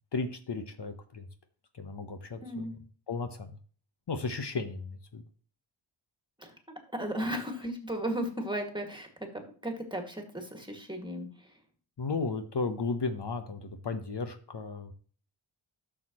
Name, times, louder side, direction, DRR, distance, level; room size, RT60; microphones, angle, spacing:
voice 1, 0.1-1.3 1.8-2.7 3.1-3.6 4.1-5.2 12.0-14.9, left 4 dB, 55° left, 7 dB, 1.1 m, -34 dB
voice 2, 2.4-2.7 6.4-11.5, equal, 10° right, 3 dB, 2.0 m, -36 dB
11.5 x 6.6 x 3.0 m, 0.43 s
wide cardioid pair, 70°, 49 cm